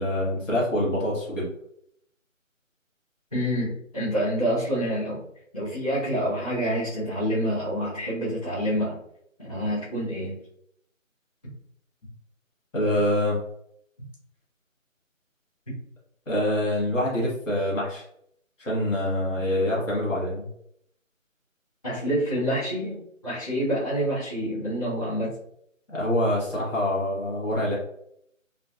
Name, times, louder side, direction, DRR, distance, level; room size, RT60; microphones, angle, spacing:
voice 1, 0.0-1.5 12.7-13.4 16.3-18.0 18.6-20.5 25.9-27.8, left 1 dB, 65° left, -5 dB, 1.1 m, -25 dB
voice 2, 3.3-5.2 5.5-9.0 9.4-10.4 21.8-25.3, equal, 25° left, -12 dB, 1.0 m, -27 dB
2.4 x 2.2 x 2.4 m, 0.72 s
figure-of-eight pair, 170°, 40 cm